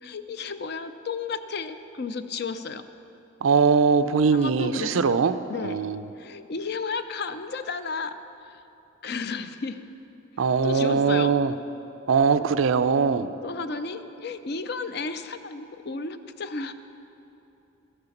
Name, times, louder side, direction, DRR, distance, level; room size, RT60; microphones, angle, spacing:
voice 1, 0.0-2.9 4.3-5.9 6.2-8.2 8.5-8.6 9.0-9.9 10.6-11.3 13.4-16.7, left 4 dB, 55° left, 11 dB, 0.5 m, -33 dB
voice 2, 3.4-5.3 5.6-6.1 10.4-11.5 12.1-13.3, right 5 dB, 90° right, 12 dB, 0.4 m, -21 dB
12.5 x 6.7 x 7.1 m, 3.0 s
head